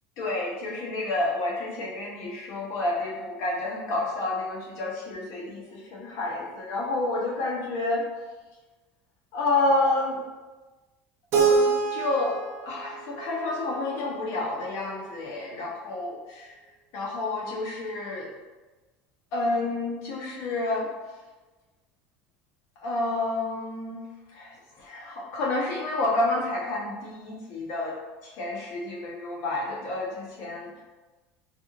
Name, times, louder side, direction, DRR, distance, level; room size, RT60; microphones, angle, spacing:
voice 1, 0.2-8.1 9.3-10.2 11.3-16.6 16.9-18.3 19.3-20.9 22.8-28.0 28.2-30.8, left 2 dB, 60° left, -2 dB, 1.0 m, -29 dB
Keyboard (musical), 11.3-14.2, right 5 dB, 50° right, 0.7 m, -26 dB
3.9 x 2.4 x 3.1 m, 1.2 s
supercardioid pair, 120°, 5 cm